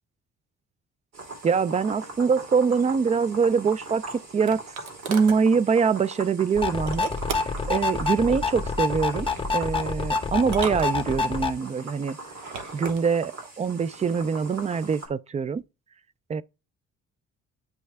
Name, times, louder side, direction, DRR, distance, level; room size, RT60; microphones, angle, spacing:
sound 1, 1.1-15.1, right 2 dB, 55° right, 2.5 m, -41 dB
voice 1, 1.4-4.0 4.3-4.6 5.1-7.1 7.7-9.3 9.5-12.2 12.7-15.6 16.3-16.4, right 5 dB, 25° right, 0.4 m, -24 dB
sound 2, 3.7-5.4 6.9-7.7 9.0-9.5 10.4-11.4 12.3-13.0, right 5 dB, 75° right, 1.2 m, -37 dB
sound 3, 6.5-11.5, left 4 dB, 20° left, 0.9 m, -27 dB
9.4 x 3.2 x 3.3 m
cardioid pair, 90°, 30 cm